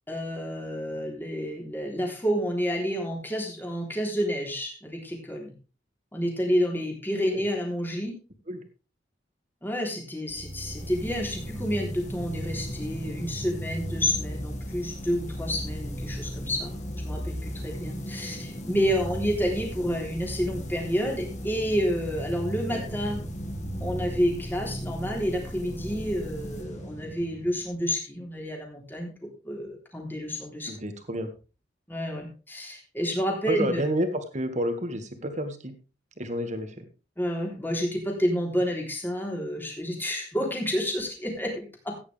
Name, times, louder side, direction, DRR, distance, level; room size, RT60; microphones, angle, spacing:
voice 1, 0.1-5.5 6.1-8.1 9.6-23.2 23.8-30.7 31.9-33.9 37.2-42.0, equal, 10° left, 0 dB, 3.5 m, -29 dB
sound 1, 10.3-27.8, equal, 40° left, 1.9 m, -36 dB
voice 2, 30.7-31.3 33.5-35.7 36.2-36.9, equal, 40° right, 7 dB, 1.8 m, -30 dB
14.5 x 9.7 x 3.4 m, 0.34 s
head